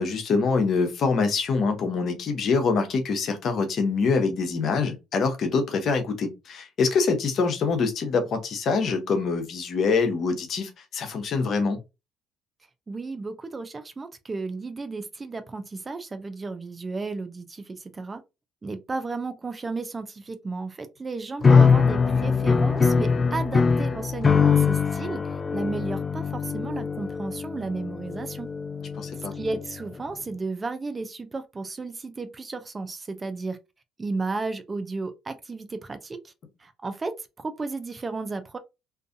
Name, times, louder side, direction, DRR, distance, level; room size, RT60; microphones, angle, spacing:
voice 1, 0.0-11.8 21.5-21.7 29.0-29.3, left 4 dB, 55° left, 0.7 m, -25 dB
voice 2, 12.9-18.2 18.6-25.2 25.5-28.5 29.3-33.6 34.0-36.3 36.6-38.6, right 3 dB, 25° right, 0.5 m, -33 dB
sound 1, 21.4-29.7, left 5 dB, 30° left, 0.3 m, -22 dB
2.5 x 2.4 x 2.5 m
supercardioid pair, 75°, 0 cm